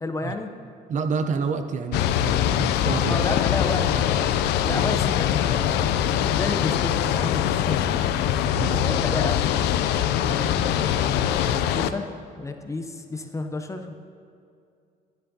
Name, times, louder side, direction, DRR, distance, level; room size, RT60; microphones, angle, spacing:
voice 1, 0.0-0.5 3.1-6.0 6.3-8.0 8.7-12.1 12.4-13.9, left 3 dB, 20° left, 6 dB, 0.6 m, -32 dB
voice 2, 0.9-3.2 4.7-4.8 8.5-8.8, right 5 dB, 45° right, 7 dB, 0.6 m, -29 dB
sound 1, 1.9-11.9, left 10 dB, 85° left, 0.4 m, -23 dB
10.5 x 10.0 x 2.7 m, 2.4 s
cardioid pair, 110°, 17 cm